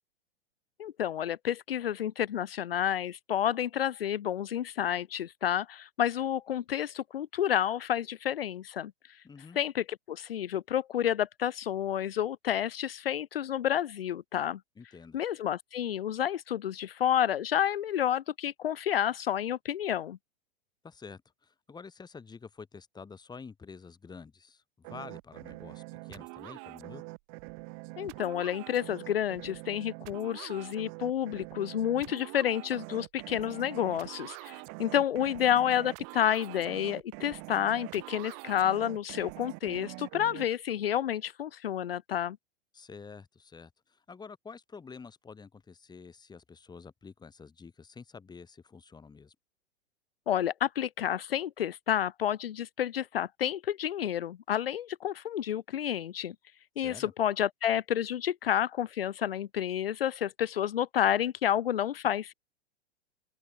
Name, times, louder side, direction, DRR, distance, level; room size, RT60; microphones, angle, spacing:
voice 1, 0.8-9.2 9.5-14.6 15.1-20.2 28.0-42.4 50.3-56.3 56.8-62.3, left 10 dB, 60° left, 1.5 m, -30 dB
voice 2, 9.2-9.6 14.8-15.2 20.8-27.0 42.7-49.4 56.8-57.1, left 5 dB, 10° left, 5.7 m, -48 dB
sound 1, 24.8-40.4, right 40 dB or more, 40° right, 1.9 m, -44 dB
open air
figure-of-eight pair, 100°, 32 cm